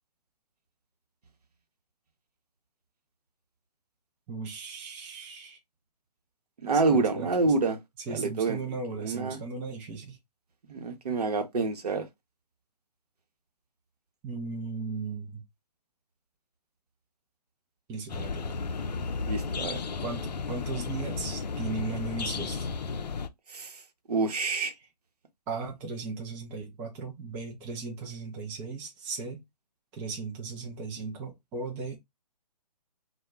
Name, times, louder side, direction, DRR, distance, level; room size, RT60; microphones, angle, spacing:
voice 1, 4.3-5.6 6.9-7.5 8.1-10.2 14.2-15.4 17.9-18.5 20.0-22.7 25.5-29.4 29.9-32.0, right 4 dB, 10° right, 0.3 m, -37 dB
voice 2, 6.6-7.8 8.1-8.6 9.0-9.4 10.7-12.1 19.3-19.8 23.5-23.7 24.1-24.7, right 3 dB, 65° right, 0.8 m, -27 dB
sound 1, 18.1-23.3, left 4 dB, 80° left, 0.4 m, -33 dB
2.2 x 2.1 x 3.5 m
figure-of-eight pair, 135°, 21 cm